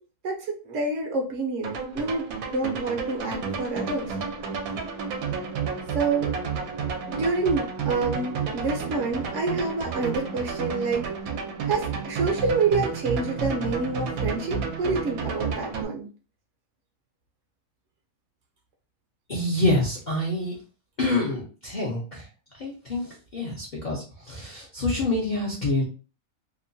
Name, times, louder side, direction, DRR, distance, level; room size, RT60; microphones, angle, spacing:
voice 1, 0.2-2.2 2.5-4.2 5.9-6.4 7.1-11.0 11.6-16.1, right 3 dB, 65° right, 2 dB, 0.9 m, -27 dB
sound 1, 1.6-15.8, right 5 dB, 85° right, 1.0 m, -31 dB
voice 2, 19.3-20.6 21.0-22.3 22.5-25.8, left 2 dB, 50° left, -4 dB, 0.6 m, -27 dB
2.8 x 2.2 x 2.6 m, 0.36 s
omnidirectional pair, 1.5 m